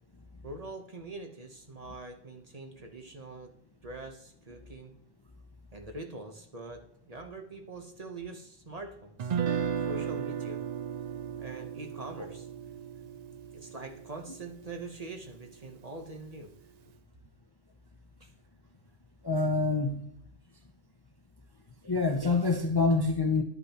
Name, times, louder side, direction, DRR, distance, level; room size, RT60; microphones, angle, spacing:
voice 1, 0.4-3.5 3.8-4.9 5.7-9.4 9.9-10.6 11.4-12.5 13.5-16.5 18.2-18.3, right 2 dB, 35° right, 4 dB, 1.0 m, -43 dB
Guitar, 9.2-15.3, right 8 dB, 55° right, 0.5 m, -35 dB
voice 2, 19.2-20.0 21.8-23.4, left 3 dB, 25° left, 4 dB, 0.6 m, -26 dB
10.5 x 8.5 x 2.9 m, 0.72 s
omnidirectional pair, 1.1 m